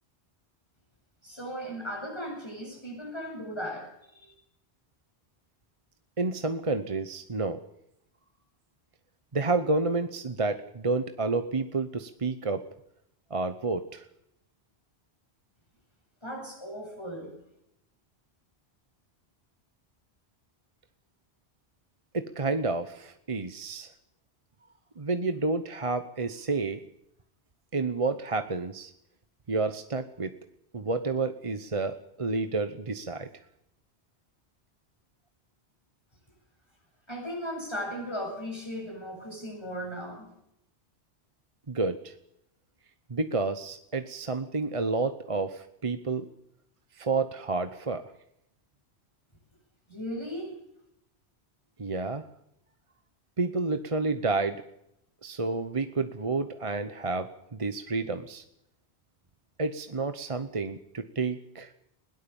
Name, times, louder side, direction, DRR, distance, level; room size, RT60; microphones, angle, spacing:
voice 1, 1.2-4.3 16.2-17.3 37.1-40.3 49.9-50.5, equal, 25° left, 1 dB, 8.0 m, -37 dB
voice 2, 6.2-7.6 9.3-12.6 13.3-14.0 22.1-23.9 25.0-26.8 27.7-28.9 29.5-30.3 30.7-33.3 41.7-42.1 43.1-46.3 47.0-48.1 51.8-52.3 53.4-54.6 55.2-58.4 59.6-61.7, right 3 dB, 30° right, 9 dB, 1.0 m, -30 dB
20.5 x 17.5 x 7.1 m, 0.77 s
omnidirectional pair, 1.1 m